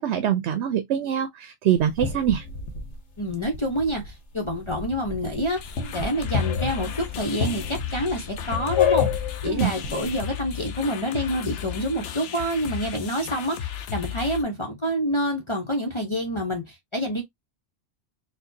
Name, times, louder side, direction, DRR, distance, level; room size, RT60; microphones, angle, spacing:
voice 1, 0.0-2.4 9.5-9.7, right 10 dB, 80° right, 0.9 m, -24 dB
sound 1, 1.8-4.1 4.4-10.3, left 6 dB, 90° left, 1.3 m, -29 dB
voice 2, 3.2-5.6 5.9-17.2, equal, 30° left, 0.8 m, -27 dB
sound 2, 5.6-14.4, left 10 dB, 70° left, 0.8 m, -35 dB
4.4 x 2.3 x 2.6 m
omnidirectional pair, 1.1 m